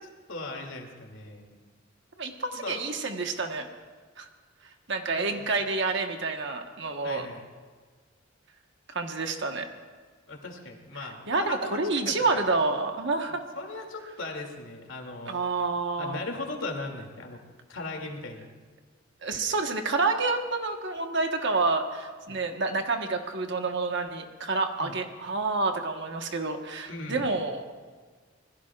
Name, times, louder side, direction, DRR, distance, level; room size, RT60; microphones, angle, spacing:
voice 1, 0.0-1.5 2.5-2.8 5.1-5.4 7.0-7.5 10.3-12.3 13.3-15.4 16.0-17.4 17.7-18.5 22.3-22.4 24.8-25.0 26.8-27.3, left 2 dB, 85° left, 2 dB, 2.7 m, -38 dB
voice 2, 2.2-3.7 4.2-4.3 4.9-7.3 8.9-9.7 11.3-13.4 15.3-16.2 19.2-27.6, right 3 dB, 65° right, 4 dB, 1.3 m, -28 dB
26.0 x 20.5 x 2.5 m, 1.5 s
head